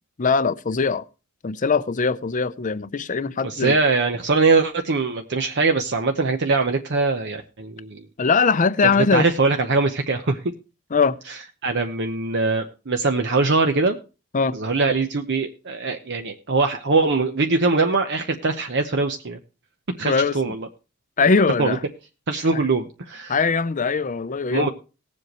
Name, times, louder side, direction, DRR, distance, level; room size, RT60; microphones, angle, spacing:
voice 1, 0.2-1.0 1.4-3.8 8.2-9.3 10.9-11.2 14.3-14.6 20.0-20.5 21.2-21.8 22.5-22.7 23.3-24.7, left 4 dB, 35° left, 0.6 m, -21 dB
voice 2, 3.4-8.0 9.1-10.4 11.3-11.4 11.6-14.0 14.5-19.4 20.0-20.7 21.6-21.8 22.3-23.3 24.5-24.7, right 3 dB, 55° right, 0.9 m, -22 dB
19.0 x 7.6 x 3.0 m
head